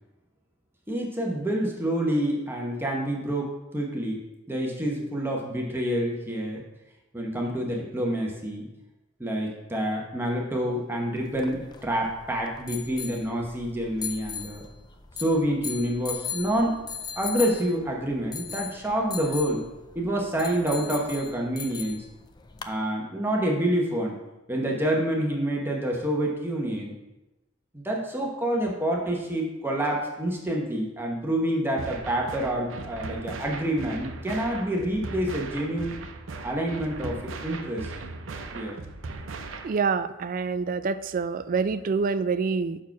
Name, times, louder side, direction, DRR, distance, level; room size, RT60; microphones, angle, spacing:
voice 1, 0.9-6.6 7.1-8.7 9.2-14.6 15.2-16.8 17.2-19.6 19.9-22.0 22.6-24.2 24.5-26.9 27.7-35.9 36.4-37.9 38.5-38.7, right 1 dB, 10° right, -1 dB, 1.0 m, -27 dB
sound 1, 11.2-22.7, left 7 dB, 20° left, 0.4 m, -39 dB
sound 2, 31.8-39.8, right 3 dB, 85° right, 0.6 m, -38 dB
voice 2, 39.6-42.8, right 5 dB, 45° right, 12 dB, 0.3 m, -26 dB
6.0 x 4.6 x 5.8 m, 1.0 s
head